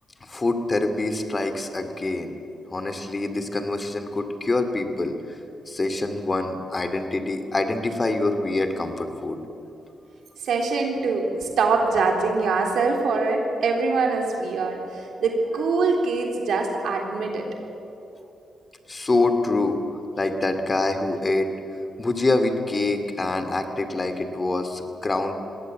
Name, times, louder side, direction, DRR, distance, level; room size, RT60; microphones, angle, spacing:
voice 1, 0.2-2.3 2.7-5.2 5.7-9.4 18.9-19.8 20.2-21.5 22.0-25.3, left 2 dB, 30° left, 8 dB, 2.6 m, -25 dB
voice 2, 10.4-17.5, right 4 dB, 75° right, 2 dB, 3.6 m, -23 dB
21.0 x 17.5 x 8.6 m, 2.8 s
cardioid pair, 80°, 0 cm